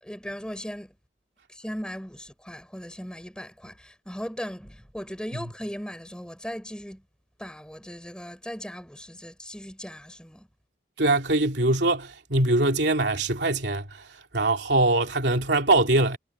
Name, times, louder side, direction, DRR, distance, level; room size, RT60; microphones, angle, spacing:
voice 1, 0.0-0.9 1.5-7.0 7.4-10.5, equal, 5° left, 7.8 m, -38 dB
voice 2, 11.0-14.1 14.3-16.2, right 2 dB, 75° right, 3.0 m, -22 dB
head